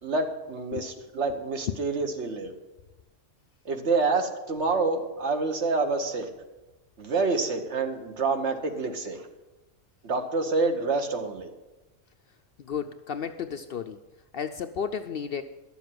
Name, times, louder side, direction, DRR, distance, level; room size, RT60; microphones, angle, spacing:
voice 1, 0.0-2.5 3.6-6.3 7.0-9.3 10.0-11.5, right 3 dB, 65° right, 5 dB, 1.4 m, -27 dB
voice 2, 0.7-1.1 1.7-1.8 12.6-14.0 14.3-15.4, left 7 dB, 60° left, 8 dB, 0.6 m, -33 dB
12.0 x 7.2 x 7.6 m, 1.1 s
omnidirectional pair, 1.3 m